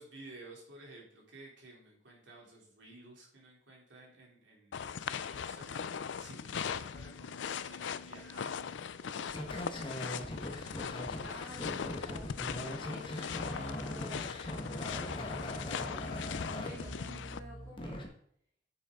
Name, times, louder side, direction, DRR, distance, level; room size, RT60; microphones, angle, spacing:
voice 1, 0.0-8.6 9.0-10.8, right 2 dB, 75° right, -2 dB, 3.3 m, -54 dB
sound 1, 4.7-17.4, left 7 dB, 70° left, 0.4 m, -40 dB
sound 2, 9.3-18.1, left 1 dB, 25° left, 1.4 m, -41 dB
voice 2, 11.2-18.1, equal, 15° right, -6 dB, 2.3 m, -51 dB
9.4 x 7.7 x 3.8 m, 0.64 s
head